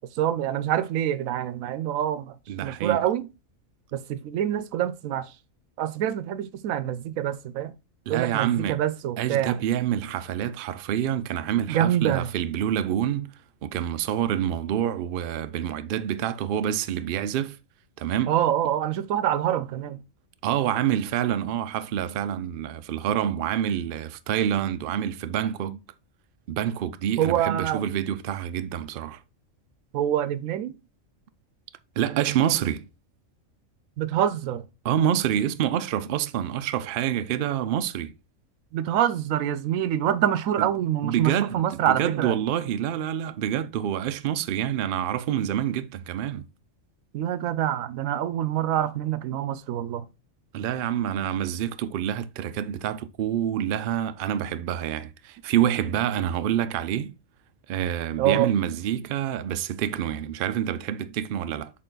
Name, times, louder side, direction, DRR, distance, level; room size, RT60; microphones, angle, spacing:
voice 1, 0.1-2.4 2.6-3.3 3.9-5.4 5.8-7.7 8.1-9.6 11.7-12.3 18.3-20.0 27.2-27.9 29.9-30.7 34.0-34.7 38.7-42.4 47.1-50.0 58.2-58.5, right 11 dB, 85° right, 1.0 m, -26 dB
voice 2, 2.5-3.0 8.1-8.8 9.2-13.3 13.6-17.6 18.0-18.3 20.4-25.8 26.5-29.2 32.0-32.8 34.8-38.1 40.6-40.7 41.0-46.5 50.5-57.1 57.7-61.7, right 10 dB, 65° right, 0.5 m, -27 dB
6.7 x 3.7 x 3.9 m
omnidirectional pair, 1.4 m